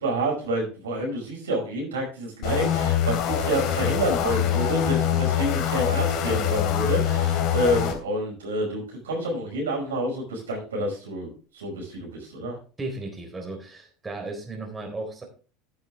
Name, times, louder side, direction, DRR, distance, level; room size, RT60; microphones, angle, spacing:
voice 1, 0.0-12.6, right 1 dB, 85° right, -1 dB, 5.4 m, -28 dB
sound 1, 2.4-8.0, left 9 dB, 60° left, 3.0 m, -24 dB
voice 2, 12.8-15.2, right 2 dB, 20° right, 2 dB, 3.8 m, -35 dB
11.0 x 9.7 x 3.5 m, 0.37 s
hypercardioid pair, 75°, 0 cm